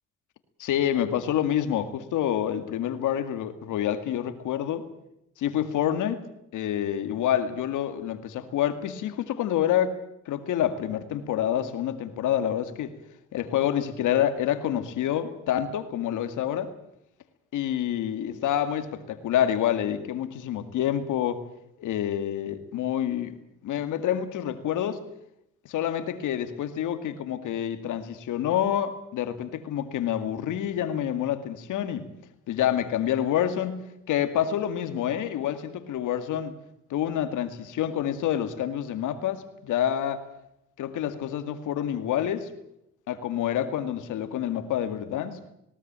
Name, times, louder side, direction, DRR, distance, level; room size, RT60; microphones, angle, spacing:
voice 1, 0.6-4.9 5.4-6.2 6.5-10.0 10.3-12.9 13.3-16.7 17.5-21.4 21.8-23.4 23.6-25.0 25.7-32.1 32.5-36.6 36.9-40.2 40.8-42.5 43.1-45.4, left 10 dB, 85° left, 9 dB, 2.2 m, -27 dB
19.5 x 17.5 x 8.9 m, 0.82 s
cardioid pair, 90°, 30 cm